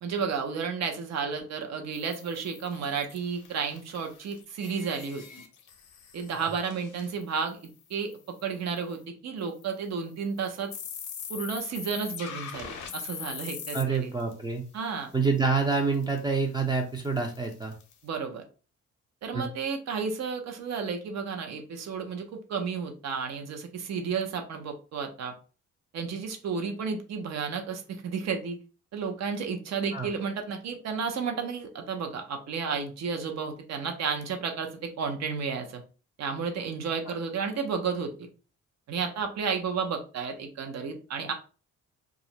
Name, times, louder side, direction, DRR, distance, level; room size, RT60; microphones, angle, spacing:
voice 1, 0.0-5.2 6.1-8.1 8.4-10.7 11.3-14.1 14.7-15.1 18.0-18.5 19.2-25.3 25.9-28.6 28.9-35.8 36.2-38.3 38.9-41.3, right 5 dB, 60° right, 5 dB, 0.6 m, -32 dB
sound 1, 1.9-8.1 8.4-8.5 8.8-9.0 9.6-9.8 10.4-14.3 15.9-16.2 17.0-17.9, left 7 dB, 70° left, 0.6 m, -42 dB
voice 2, 13.7-14.6 15.1-17.7 19.3-19.5 29.9-30.1, right 4 dB, 15° right, 2 dB, 0.4 m, -27 dB
2.4 x 2.0 x 2.8 m, 0.36 s
cardioid pair, 90°, 30 cm